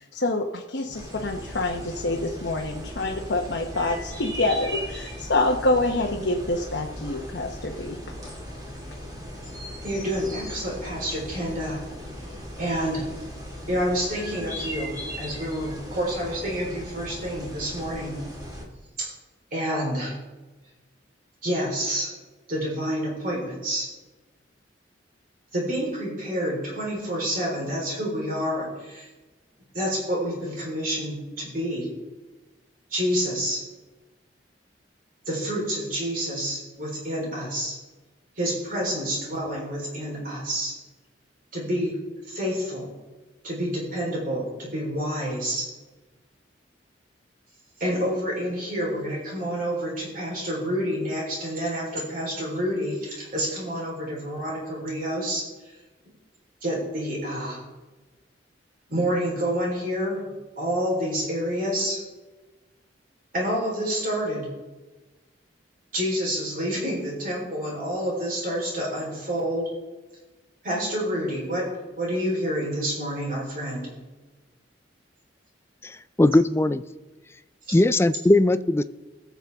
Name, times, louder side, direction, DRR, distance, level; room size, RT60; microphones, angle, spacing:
voice 1, 0.1-8.0, left 2 dB, 65° left, 0 dB, 1.0 m, -26 dB
sound 1, 0.9-18.6, equal, 20° right, 2.2 m, -38 dB
voice 2, 9.8-11.8 12.6-13.1 13.7-18.2 19.5-20.2 21.4-22.1 22.5-23.9 25.5-29.1 29.7-31.9 32.9-33.6 35.3-37.8 38.4-40.7 41.5-42.0 42.3-42.9 43.4-45.6 47.8-55.4 56.6-57.6 58.9-62.0 63.3-64.5 65.9-69.7 70.6-71.7 72.0-73.9 77.7-77.8, equal, 50° right, -3 dB, 3.9 m, -28 dB
voice 3, 75.8-76.8 77.7-78.8, left 2 dB, 15° left, 13 dB, 0.3 m, -19 dB
20.5 x 7.3 x 3.6 m, 1.2 s
head